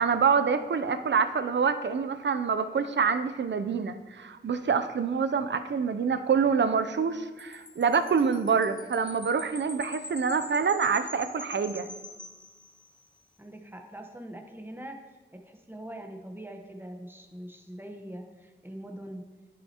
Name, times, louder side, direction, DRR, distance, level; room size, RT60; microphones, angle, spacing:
voice 1, 0.0-11.9, right 6 dB, 80° right, 10 dB, 0.5 m, -26 dB
Wind chime, 7.4-13.1, left 2 dB, 25° left, 0.9 m, -44 dB
voice 2, 13.4-15.0 15.3-19.2, right 1 dB, 10° right, 3 dB, 0.9 m, -43 dB
10.5 x 6.3 x 2.9 m, 1.3 s
wide cardioid pair, 55°, 18 cm